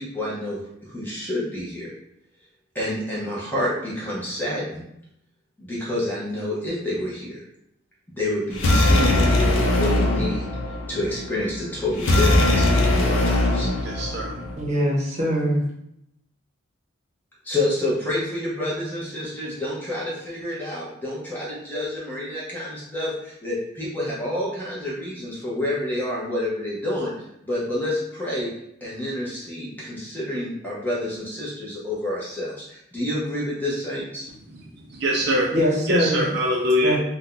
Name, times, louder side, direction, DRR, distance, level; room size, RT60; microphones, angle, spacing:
voice 1, 0.0-1.9 2.7-4.8 5.6-7.4 8.1-10.5 10.9-13.7 17.4-27.1 27.4-28.5 28.8-34.3, left 1 dB, 10° left, -6 dB, 0.7 m, -28 dB
sound 1, 8.5-14.5, left 1 dB, 75° left, 0.5 m, -21 dB
voice 2, 13.4-14.5 35.0-35.5 35.9-37.0, equal, 50° right, -1 dB, 0.4 m, -24 dB
voice 3, 14.6-15.6 35.5-36.3 36.8-37.0, equal, 35° right, -4 dB, 0.8 m, -22 dB
2.6 x 2.2 x 3.7 m, 0.77 s
head